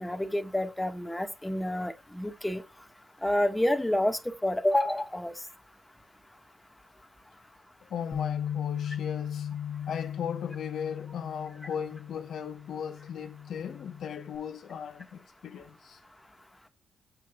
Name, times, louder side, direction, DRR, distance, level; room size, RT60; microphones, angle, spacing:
voice 1, 0.0-2.6 3.2-5.3, left 1 dB, 5° left, 1.4 m, -28 dB
voice 2, 7.8-9.6 9.9-16.0, left 7 dB, 70° left, 0.9 m, -37 dB
Bass guitar, 8.1-14.4, left 9 dB, 45° left, 1.4 m, -37 dB
7.7 x 7.0 x 3.7 m
cardioid pair, 110°, 0 cm